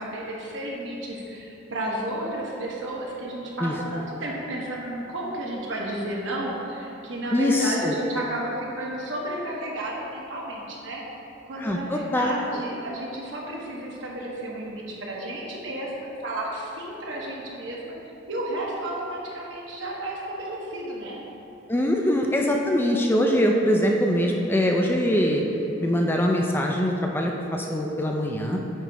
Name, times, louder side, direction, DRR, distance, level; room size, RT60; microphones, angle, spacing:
voice 1, 0.0-11.0 11.4-17.9 18.3-21.2, right 1 dB, 65° right, -3 dB, 1.1 m, -32 dB
voice 2, 7.3-7.9 11.6-12.3 21.7-25.4 25.8-28.6, equal, 10° left, 1 dB, 0.3 m, -23 dB
8.9 x 3.0 x 4.6 m, 2.9 s
head